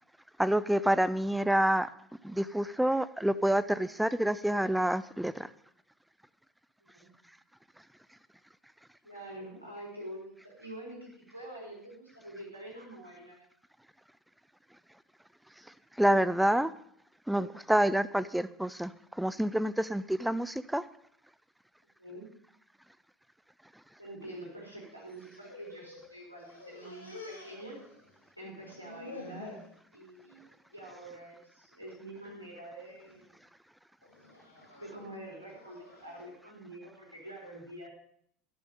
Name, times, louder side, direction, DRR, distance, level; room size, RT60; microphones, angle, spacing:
voice 1, 0.4-1.9 2.2-5.5 16.0-16.7 17.3-20.8, right 1 dB, 5° right, 0.6 m, -28 dB
voice 2, 9.0-13.4 22.0-22.3 24.0-27.8 28.4-29.6 29.9-33.4 34.7-37.9, right 1 dB, 90° right, 4.2 m, -46 dB
sound 1, 25.0-26.1 26.4-28.3 28.5-29.7 30.2-30.5 30.9-31.1 31.9-32.3 32.8-33.2 34.0-36.2, left 2 dB, 85° left, 3.5 m, -49 dB
13.0 x 10.5 x 5.3 m
figure-of-eight pair, 70°, 0 cm